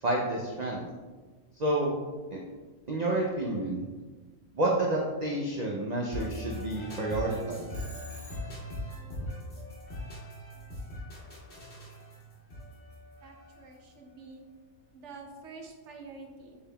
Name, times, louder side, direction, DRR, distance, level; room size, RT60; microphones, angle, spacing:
voice 1, 0.0-0.8 1.6-1.9 2.3-2.4 2.9-3.9 4.6-7.7, right 1 dB, 85° right, -2 dB, 0.3 m, -29 dB
sound 1, 6.1-13.9, left 1 dB, 50° left, 1.3 m, -40 dB
Telephone, 7.7-8.8, right 1 dB, 15° right, 0.4 m, -50 dB
voice 2, 13.2-14.4 14.9-16.6, right 3 dB, 65° right, 2 dB, 0.9 m, -47 dB
6.5 x 3.4 x 2.2 m, 1.3 s
omnidirectional pair, 1.4 m